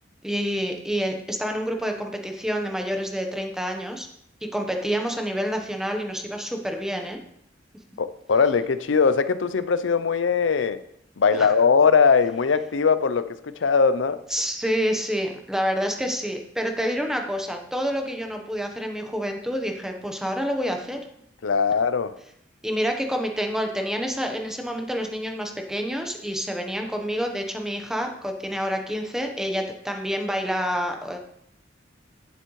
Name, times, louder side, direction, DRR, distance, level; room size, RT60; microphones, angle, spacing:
voice 1, 0.2-4.1 4.5-7.2 11.4-11.5 14.3-21.0 22.6-31.2, equal, 5° right, 3 dB, 1.0 m, -28 dB
voice 2, 8.0-10.8 11.2-14.2 21.4-22.1, left 5 dB, 75° left, 12 dB, 0.5 m, -20 dB
11.0 x 6.8 x 3.2 m, 0.73 s
head